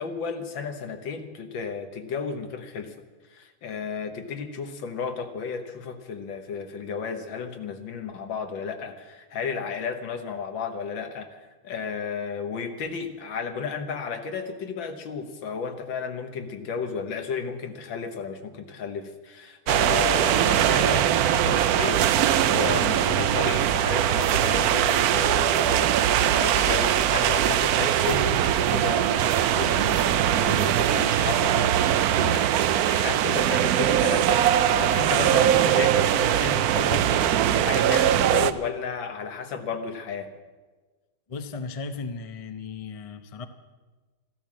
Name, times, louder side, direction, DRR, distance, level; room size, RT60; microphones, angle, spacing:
voice 1, 0.0-2.9 3.3-40.3, left 6 dB, 75° left, 7 dB, 2.0 m, -33 dB
sound 1, 19.7-38.5, right 10 dB, 70° right, 0.9 m, -21 dB
sound 2, 24.1-31.0, right 3 dB, 40° right, 2.4 m, -46 dB
voice 2, 41.3-43.4, left 4 dB, 40° left, 8 dB, 0.4 m, -36 dB
14.0 x 12.5 x 7.4 m, 1.3 s
omnidirectional pair, 2.1 m